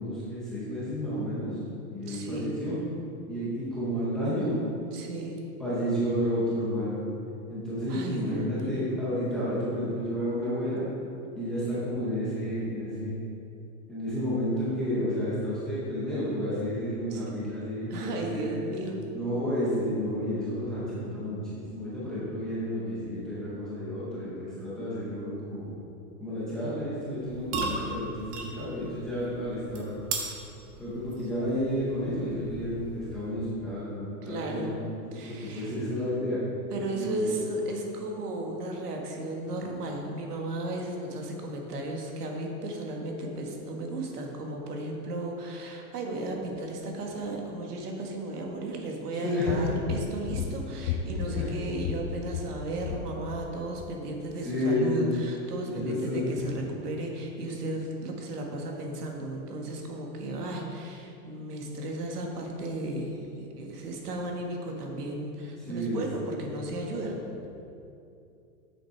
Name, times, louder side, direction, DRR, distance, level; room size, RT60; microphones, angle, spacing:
voice 1, 0.0-1.6 1.9-2.8 3.3-4.5 5.6-7.0 7.5-10.9 11.4-13.2 13.9-18.6 19.1-25.7 26.2-30.0 30.8-34.8 35.1-36.4 36.9-37.3 39.6-39.7 49.2-49.7 51.3-51.5 54.4-55.0 55.6-56.6 65.6-66.4, equal, ahead, -11 dB, 0.5 m, -31 dB
voice 2, 2.1-2.5 4.9-5.4 7.9-8.9 17.1-17.2 17.9-19.0 34.2-34.8 35.1-35.8 36.2-36.3 36.7-67.2, right 1 dB, 85° right, 1 dB, 1.8 m, -35 dB
sound 1, 27.1-33.5, right 3 dB, 50° right, 1.3 m, -38 dB
sound 2, 49.5-53.5 53.8-53.9, left 6 dB, 65° left, 0.6 m, -34 dB
8.0 x 6.7 x 4.6 m, 2.7 s
supercardioid pair, 170°, 46 cm